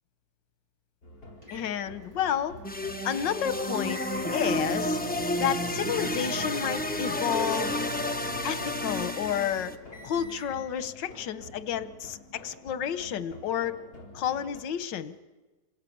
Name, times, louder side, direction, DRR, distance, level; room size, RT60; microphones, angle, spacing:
sound 1, 1.0-14.6, left 2 dB, 65° left, 5.3 m, -48 dB
sound 2, 1.4-10.5, right 2 dB, 20° right, 4.3 m, -43 dB
voice 1, 1.5-2.6 3.0-4.0 4.3-5.0 5.4-7.8 8.4-9.7 10.0-12.2 12.4-13.8 14.1-15.1, left 9 dB, 85° left, 13 dB, 1.6 m, -30 dB
sound 3, 2.6-9.7, left 1 dB, 10° left, 0.6 m, -31 dB
27.0 x 17.0 x 8.5 m, 1.2 s
omnidirectional pair, 1.9 m